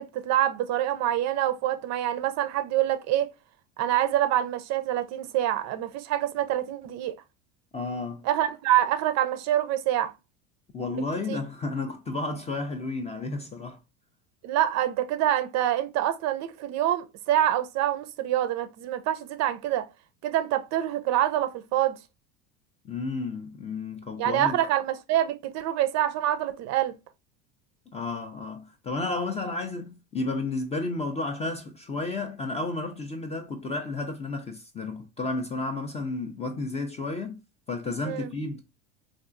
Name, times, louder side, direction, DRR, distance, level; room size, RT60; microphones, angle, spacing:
voice 1, 0.0-3.3 3.8-7.1 8.2-10.1 10.9-11.0 11.3-11.4 14.4-19.9 20.2-22.0 24.2-27.0 38.1-38.3, right 12 dB, 45° right, 0.4 m, -26 dB
voice 2, 7.7-8.2 10.7-13.8 22.8-24.6 27.9-37.4 37.7-38.6, left 3 dB, 20° left, 0.4 m, -32 dB
3.5 x 2.4 x 2.5 m
hypercardioid pair, 90°, 39 cm